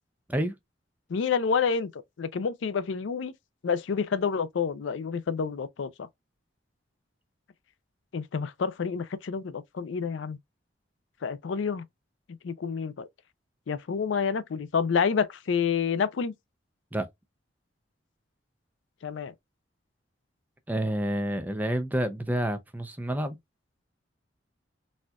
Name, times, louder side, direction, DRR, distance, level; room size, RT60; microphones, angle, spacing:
voice 1, 1.1-3.3 3.6-6.1 8.1-10.4 11.2-11.8 12.4-13.1 13.7-16.3 19.0-19.3, left 6 dB, 80° left, 0.4 m, -28 dB
voice 2, 20.7-23.4, right 1 dB, 10° right, 0.5 m, -29 dB
4.2 x 2.4 x 2.3 m
head